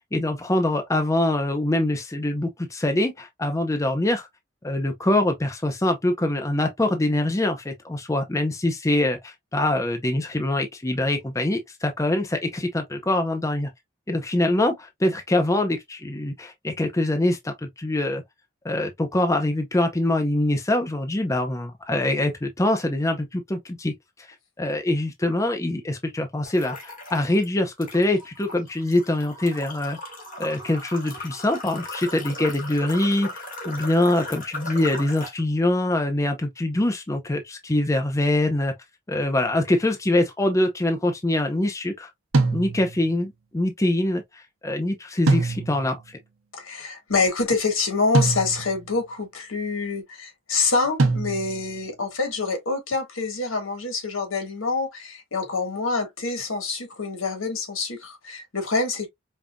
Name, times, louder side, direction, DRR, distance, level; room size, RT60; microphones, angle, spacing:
voice 1, 0.1-4.3 4.6-13.7 14.1-18.2 18.6-23.9 24.6-30.0 30.4-38.7 39.1-42.1 42.5-46.0, left 1 dB, 15° left, 0.5 m, -24 dB
sound 1, 26.4-27.4 27.8-35.4, left 2 dB, 40° left, 1.7 m, -37 dB
sound 2, 42.3-43.1 45.3-46.0 48.1-48.9 51.0-51.8, right 3 dB, 90° right, 0.9 m, -23 dB
voice 2, 46.5-59.1, left 4 dB, 75° left, 1.5 m, -26 dB
5.3 x 2.5 x 2.2 m
head